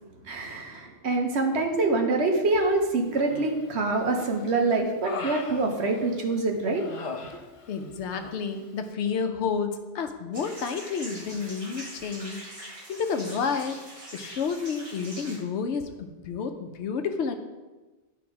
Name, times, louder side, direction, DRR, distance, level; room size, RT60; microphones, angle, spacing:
voice 1, 0.2-6.8 7.2-7.3, right 3 dB, 70° right, 3 dB, 1.2 m, -25 dB
Human voice, 3.2-3.8 4.2-6.3 6.8-7.8 8.1-8.4, left 4 dB, 45° left, 0.4 m, -39 dB
voice 2, 7.7-12.4 12.9-13.8 14.1-17.3, left 6 dB, 75° left, 7 dB, 1.0 m, -30 dB
sound 1, 10.3-15.4, right 1 dB, 30° right, 1.6 m, -43 dB
10.5 x 3.5 x 4.7 m, 1.2 s
omnidirectional pair, 1.2 m